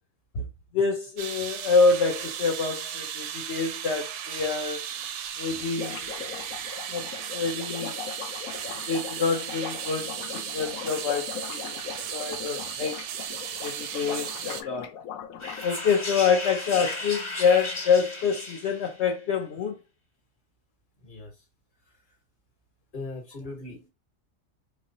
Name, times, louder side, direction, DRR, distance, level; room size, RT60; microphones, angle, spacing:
voice 1, 0.7-4.8 5.4-6.0 6.9-8.0 8.9-11.8 12.1-13.0 13.6-15.0 15.6-19.8, left 5 dB, 60° left, 1.0 m, -26 dB
sound 1, 1.2-14.6, right 9 dB, 70° right, 0.8 m, -36 dB
sound 2, 4.4-4.5 4.7-4.8 5.0-5.1 5.4-15.6, left 9 dB, 90° left, 1.0 m, -40 dB
sound 3, 15.4-19.0, left 2 dB, 25° left, 1.0 m, -35 dB
voice 2, 21.0-21.4 21.8-21.9 22.9-23.9, left 2 dB, 40° left, 1.4 m, -39 dB
4.5 x 3.1 x 2.7 m
omnidirectional pair, 1.4 m